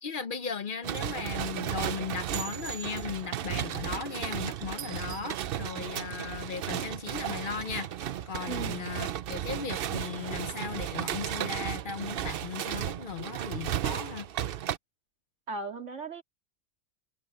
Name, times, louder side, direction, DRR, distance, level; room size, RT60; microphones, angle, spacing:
voice 1, 0.0-7.9 8.3-14.3, left 6 dB, 50° left, 0.8 m, -37 dB
sound 1, 0.8-14.8, right 10 dB, 60° right, 0.7 m, -34 dB
voice 2, 8.5-8.9 15.5-16.2, right 3 dB, 80° right, 2.5 m, -37 dB
omnidirectional pair, 1.2 m